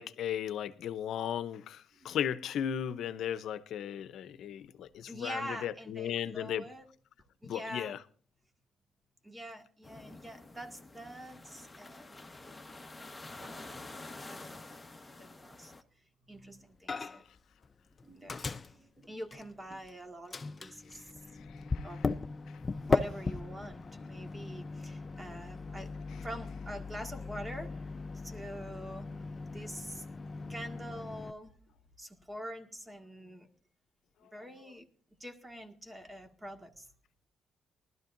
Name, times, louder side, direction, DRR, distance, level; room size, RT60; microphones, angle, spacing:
voice 1, 0.0-6.6 7.4-8.0 21.7-21.9, left 9 dB, 75° left, 0.7 m, -36 dB
voice 2, 4.9-6.9 7.4-8.0 9.2-12.2 13.4-13.8 14.2-15.7 16.3-17.2 18.0-21.1 21.8-22.0 22.8-25.9 26.2-27.9 28.2-29.1 29.5-30.0 30.5-31.6 32.0-33.5 34.2-34.9 35.2-36.9, equal, 15° right, 1.9 m, -45 dB
sound 1, 9.8-15.8, left 2 dB, 10° left, 1.3 m, -48 dB
Microwave oven, 16.9-17.4 17.6-19.9 20.3-31.3, left 4 dB, 30° left, 0.6 m, -38 dB
19.5 x 12.5 x 2.6 m
cardioid pair, 90°, 0 cm